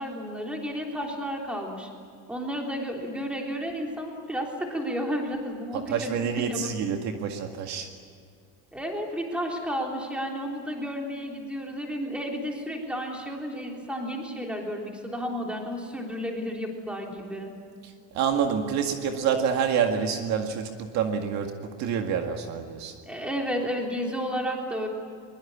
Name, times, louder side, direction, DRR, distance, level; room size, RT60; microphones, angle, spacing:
voice 1, 0.0-1.9 2.3-6.1 6.4-6.7 8.7-17.5 23.0-24.9, equal, 5° right, 0 dB, 3.5 m, -32 dB
voice 2, 5.7-7.9 17.8-23.0, right 7 dB, 50° right, 4 dB, 2.0 m, -27 dB
23.0 x 22.0 x 8.6 m, 2.3 s
cardioid pair, 165°, 36 cm